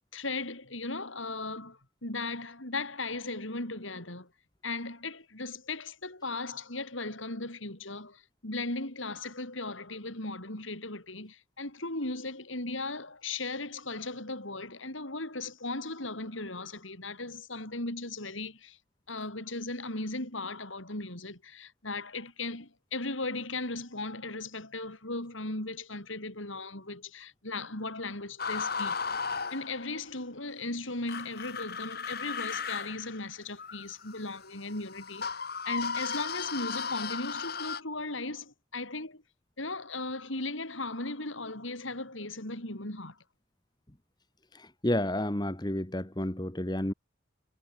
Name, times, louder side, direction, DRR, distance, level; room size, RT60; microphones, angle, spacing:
voice 1, 0.1-4.3 4.6-18.8 19.1-29.0 29.5-35.3 35.7-39.2 39.6-43.2, left 2 dB, 75° left, 5.3 m, -37 dB
sound 1, 28.4-30.1 31.1-37.8, left 5 dB, 50° left, 1.8 m, -35 dB
voice 2, 44.5-46.9, left 1 dB, 20° left, 1.6 m, -31 dB
head